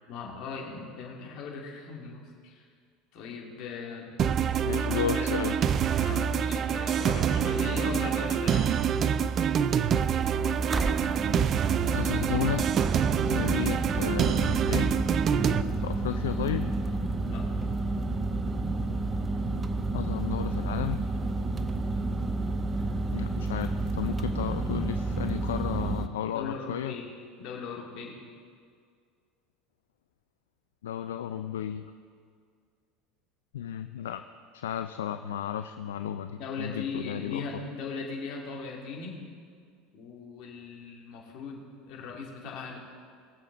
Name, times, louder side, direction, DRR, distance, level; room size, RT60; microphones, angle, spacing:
voice 1, 0.1-2.6 3.1-4.1 5.1-8.7 17.2-17.5 22.7-23.0 26.2-27.1 27.4-28.2 36.3-39.2 39.9-42.8, left 5 dB, 60° left, -2 dB, 2.8 m, -39 dB
sound 1, 4.2-15.6, right 8 dB, 45° right, 0.5 m, -26 dB
voice 2, 4.6-5.6 11.9-12.8 13.3-15.0 15.8-16.7 19.9-21.0 23.1-26.9 30.8-31.9 33.5-34.2 34.5-37.4, left 10 dB, 80° left, 9 dB, 0.4 m, -33 dB
Refrigerator Hum, 8.3-26.1, right 2 dB, 25° right, 0.9 m, -31 dB
21.0 x 7.6 x 4.1 m, 2.1 s
hypercardioid pair, 80°, 0 cm